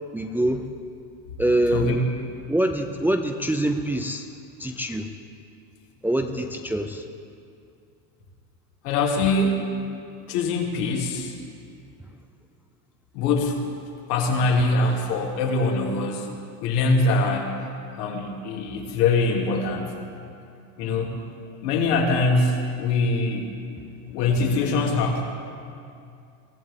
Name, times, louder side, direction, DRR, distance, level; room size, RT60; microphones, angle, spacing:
voice 1, 0.1-0.6 1.4-2.0 2.5-4.3 4.6-5.1 6.0-7.0, right 1 dB, 5° right, 4 dB, 0.4 m, -24 dB
voice 2, 8.8-9.7 10.3-11.3 13.1-13.6 14.1-16.3 16.6-17.5 18.0-19.9 20.8-21.2 21.6-23.6 24.1-25.2, left 3 dB, 70° left, 0 dB, 2.8 m, -23 dB
23.5 x 14.5 x 3.7 m, 2.4 s
supercardioid pair, 120°, 48 cm